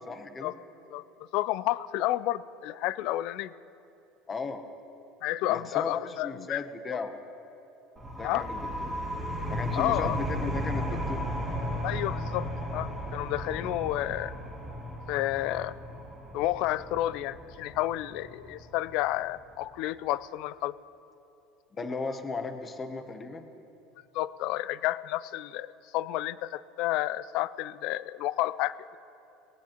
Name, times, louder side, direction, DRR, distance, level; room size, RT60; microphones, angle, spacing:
voice 1, 0.1-0.5 4.3-4.6 5.5-7.2 8.2-8.9 9.5-11.2 21.7-23.5, left 4 dB, 15° left, 8 dB, 0.7 m, -36 dB
voice 2, 1.3-3.5 5.2-6.6 8.2-8.5 9.8-10.2 11.8-14.3 15.1-15.8 16.3-20.7 24.1-29.0, left 15 dB, 50° left, 18 dB, 0.3 m, -31 dB
sound 1, 8.0-19.3, equal, 5° right, 2.4 m, -35 dB
19.0 x 17.5 x 2.9 m, 2.9 s
cardioid pair, 175°, 0 cm